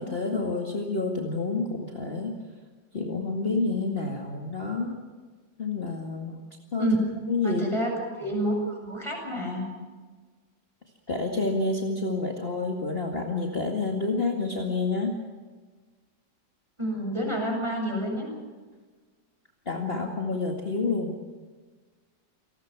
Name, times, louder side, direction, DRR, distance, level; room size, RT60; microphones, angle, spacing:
voice 1, 0.0-2.4 2.9-5.0 5.6-6.4 6.7-6.9 7.3-7.6 11.1-15.2 19.7-21.2, left 3 dB, 30° left, 0 dB, 2.3 m, -28 dB
voice 2, 7.4-7.9 8.2-9.7 16.8-18.3, right 1 dB, 15° right, 0 dB, 7.6 m, -28 dB
29.0 x 20.0 x 6.1 m, 1.4 s
omnidirectional pair, 2.0 m